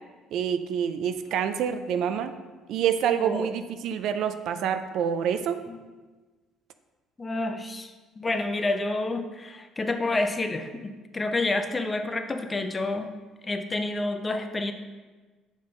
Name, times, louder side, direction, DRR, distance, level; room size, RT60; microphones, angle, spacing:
voice 1, 0.3-2.3 2.7-5.6, right 8 dB, 65° right, 10 dB, 0.3 m, -27 dB
voice 2, 3.2-3.5 5.7-5.8 7.2-13.1 13.4-14.7, left 2 dB, 15° left, 7 dB, 0.4 m, -29 dB
7.1 x 3.8 x 3.8 m, 1.3 s
cardioid pair, 155°, 0 cm